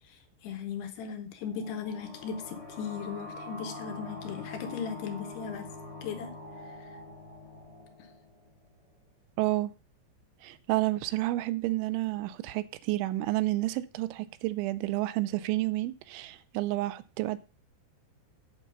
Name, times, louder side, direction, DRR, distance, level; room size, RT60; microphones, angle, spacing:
voice 1, 0.4-5.7 6.0-6.3, left 7 dB, 75° left, 2.7 m, -37 dB
sound 1, 1.3-8.8, left 2 dB, 25° left, 4.1 m, -44 dB
voice 2, 9.4-9.7 10.4-17.4, right 17 dB, 85° right, 3.0 m, -30 dB
8.5 x 7.0 x 5.4 m
omnidirectional pair, 5.4 m